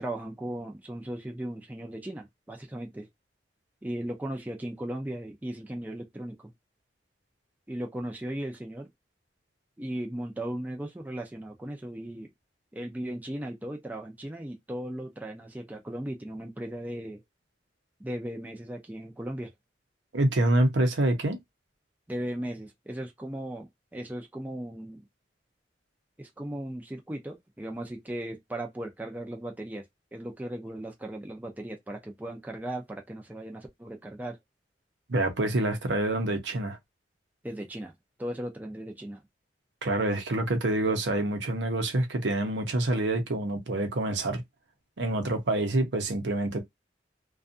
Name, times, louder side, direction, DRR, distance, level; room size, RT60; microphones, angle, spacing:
voice 1, 0.0-3.1 3.8-6.5 7.7-8.9 9.8-12.3 12.7-17.2 18.0-19.5 22.1-25.1 26.2-29.8 30.1-34.4 37.4-37.9 38.2-39.2, right 1 dB, 10° right, 0.5 m, -37 dB
voice 2, 20.1-21.4 35.1-36.8 39.8-44.4 45.0-46.6, right 1 dB, 75° right, 0.7 m, -26 dB
2.6 x 2.3 x 2.5 m
head